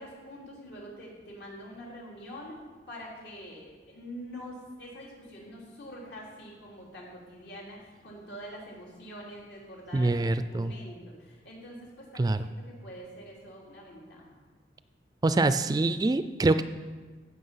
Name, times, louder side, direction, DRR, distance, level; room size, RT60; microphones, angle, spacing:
voice 1, 0.0-2.6 2.9-14.3, equal, 75° left, -3 dB, 3.4 m, -45 dB
voice 2, 9.9-10.7 12.2-12.4 15.2-16.6, right 2 dB, 20° right, 11 dB, 0.3 m, -25 dB
15.5 x 6.1 x 5.7 m, 1.4 s
head